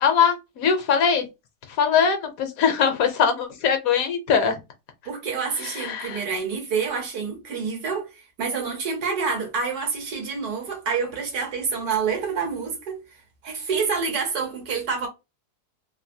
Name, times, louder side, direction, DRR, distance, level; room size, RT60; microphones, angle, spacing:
voice 1, 0.0-1.3 1.8-4.6 5.7-6.2, left 7 dB, 70° left, 1.0 m, -21 dB
voice 2, 5.0-13.0 13.4-15.1, right 5 dB, 75° right, 1.5 m, -27 dB
3.2 x 2.5 x 2.6 m
omnidirectional pair, 1.7 m